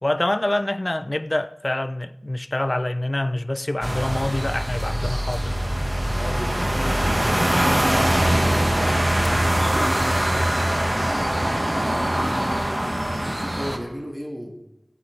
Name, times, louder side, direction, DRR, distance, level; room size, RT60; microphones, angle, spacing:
voice 1, 0.0-5.6, left 1 dB, 35° left, 0.5 m, -26 dB
sound 1, 3.8-13.8, right 1 dB, 30° right, 1.4 m, -22 dB
voice 2, 6.1-8.6 9.1-14.6, equal, 10° right, 1.8 m, -37 dB
17.5 x 8.5 x 3.3 m
wide cardioid pair, 55°, 0 cm